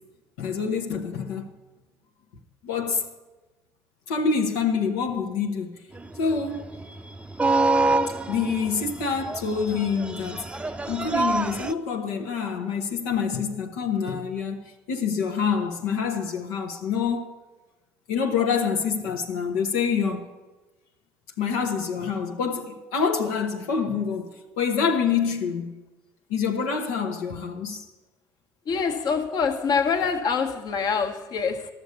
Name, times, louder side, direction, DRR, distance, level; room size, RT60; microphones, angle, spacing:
voice 1, 0.4-1.5 2.6-3.1 4.1-5.7 6.2-6.8 8.3-17.3 18.1-20.3 21.4-25.7 26.3-27.8, left 6 dB, 90° left, 1.0 m, -26 dB
sound 1, 5.9-11.7, right 3 dB, 15° right, 0.5 m, -26 dB
voice 2, 28.7-31.7, left 5 dB, 55° left, 1.3 m, -25 dB
12.5 x 7.0 x 9.4 m
supercardioid pair, 85°, 8 cm